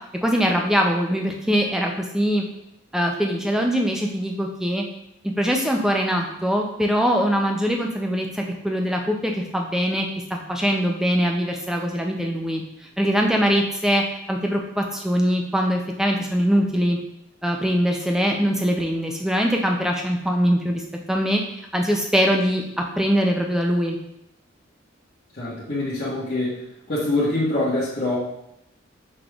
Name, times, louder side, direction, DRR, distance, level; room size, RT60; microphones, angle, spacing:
voice 1, 0.2-2.4 2.9-4.8 5.2-14.0 14.3-17.0 17.4-20.8 21.1-21.4 21.7-24.0, equal, 5° right, 1 dB, 0.4 m, -22 dB
voice 2, 25.3-26.6 26.9-28.2, left 2 dB, 50° left, -10 dB, 1.3 m, -24 dB
5.8 x 3.3 x 2.4 m, 0.82 s
head